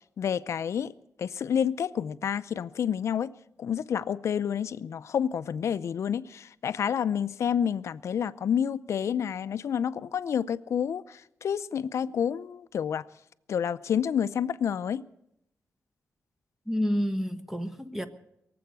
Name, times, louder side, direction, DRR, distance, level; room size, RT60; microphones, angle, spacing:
voice 1, 0.2-0.9 1.2-3.3 3.6-13.1 13.5-15.0, left 8 dB, 75° left, 0.5 m, -29 dB
voice 2, 16.7-18.1, equal, 5° right, 1.2 m, -29 dB
23.0 x 7.8 x 8.0 m
wide cardioid pair, 105°, 5 cm